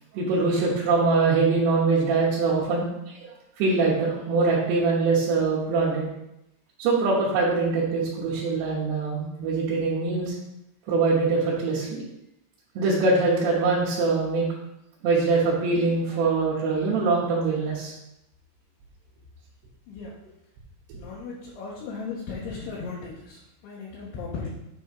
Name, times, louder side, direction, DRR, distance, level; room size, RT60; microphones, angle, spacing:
voice 1, 0.1-6.1 6.8-10.3 10.9-12.0 12.8-14.4 15.0-17.9, right 3 dB, 65° right, -8 dB, 3.1 m, -23 dB
voice 2, 20.9-24.5, left 4 dB, 70° left, -5 dB, 2.8 m, -36 dB
9.4 x 3.5 x 5.3 m, 0.87 s
omnidirectional pair, 5.7 m